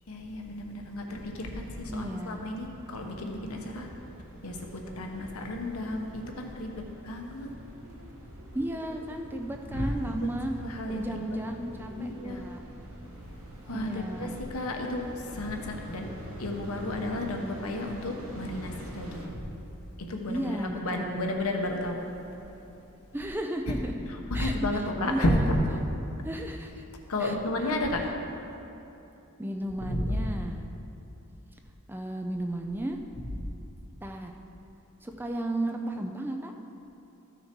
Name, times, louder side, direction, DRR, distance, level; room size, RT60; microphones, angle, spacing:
voice 1, 0.1-3.9 4.4-6.7 7.0-7.5 9.7-9.9 10.6-11.3 11.9-12.4 13.7-16.1 16.4-19.3 20.0-22.1 24.1-25.6 27.1-28.0 29.9-30.3, left 1 dB, 80° left, 2 dB, 1.1 m, -32 dB
sound 1, 1.0-19.3, right 1 dB, 65° right, 1.4 m, -45 dB
voice 2, 1.9-2.4 8.5-10.5 10.9-12.6 13.7-14.3 20.3-21.3 23.1-23.9 24.3-25.5 26.2-26.8 27.2-27.4 29.4-30.6 31.9-33.0 34.0-34.3 35.0-36.5, right 1 dB, 10° right, 4 dB, 0.4 m, -34 dB
13.5 x 6.5 x 4.5 m, 2.9 s
head